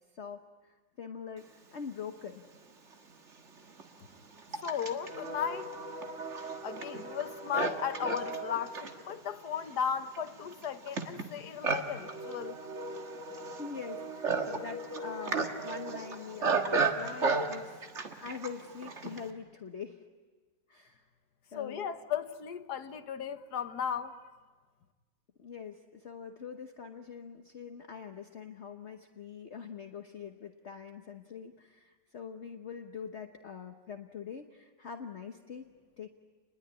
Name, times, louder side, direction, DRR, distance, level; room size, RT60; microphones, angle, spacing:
voice 1, 0.1-2.5 13.5-17.8 18.2-20.1 20.7-21.0 21.5-21.9 25.4-35.7 36.0-36.1, left 6 dB, 45° left, 1.2 m, -44 dB
Livestock farm animals working animals, 2.5-2.6 3.4-19.3, right 4 dB, 40° right, 1.9 m, -35 dB
voice 2, 4.6-5.7 6.6-12.6 21.5-24.3, left 8 dB, 65° left, 1.6 m, -35 dB
28.5 x 21.0 x 9.6 m
omnidirectional pair, 1.9 m